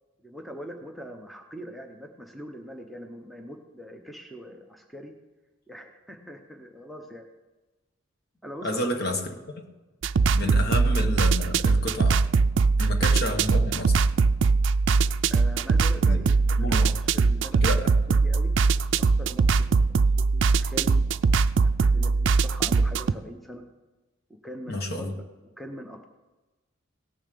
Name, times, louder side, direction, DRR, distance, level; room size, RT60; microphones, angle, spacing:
voice 1, 0.2-5.1 5.7-7.3 8.4-8.9 10.4-10.6 15.3-17.6 18.2-18.5 19.0-21.1 21.6-23.6 24.3-25.1 25.6-26.1, equal, ahead, 4 dB, 0.8 m, -42 dB
voice 2, 8.6-9.2 10.3-12.2 12.8-14.0 16.1-16.2 16.6-16.9 17.5-17.9 24.7-25.1, left 1 dB, 50° left, 5 dB, 1.4 m, -30 dB
sound 1, 10.0-23.1, right 4 dB, 60° right, 0.4 m, -22 dB
17.5 x 7.1 x 6.8 m, 1.2 s
head